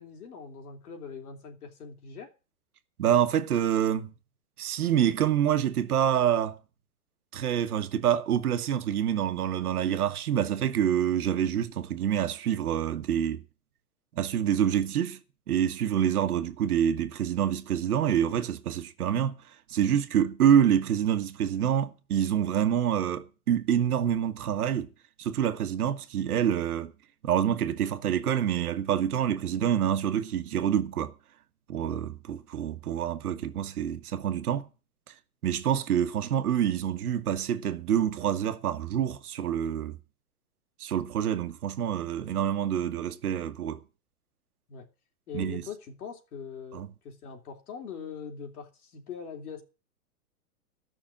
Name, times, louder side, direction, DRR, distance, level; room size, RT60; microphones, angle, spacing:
voice 1, 0.0-2.3 31.8-32.0 44.7-44.9 45.3-49.6, left 6 dB, 70° left, 3.2 m, -42 dB
voice 2, 3.0-4.1 4.6-6.6 7.3-13.4 14.1-15.2 15.5-19.4 19.7-24.9 25.2-26.9 27.2-31.1 31.7-34.7 35.4-40.0 40.8-43.8 45.3-45.6 46.7-46.9, right 9 dB, 75° right, 1.5 m, -27 dB
14.0 x 6.2 x 7.2 m
hypercardioid pair, 130°, 46 cm